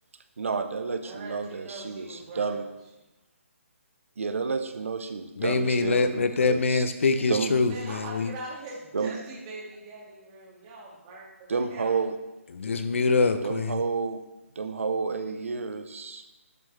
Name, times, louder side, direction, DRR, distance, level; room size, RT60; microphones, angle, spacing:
voice 1, 0.4-2.7 4.2-6.8 7.3-7.6 8.9-9.2 11.5-12.2 13.4-14.2 14.6-16.2, right 4 dB, 65° right, 9 dB, 0.9 m, -30 dB
voice 2, 1.0-2.7 7.7-12.0, right 2 dB, 25° right, -4 dB, 2.3 m, -42 dB
voice 3, 5.4-8.3 12.5-13.8, left 4 dB, 60° left, 9 dB, 0.9 m, -24 dB
12.0 x 6.4 x 3.4 m, 1.0 s
figure-of-eight pair, 150°, 8 cm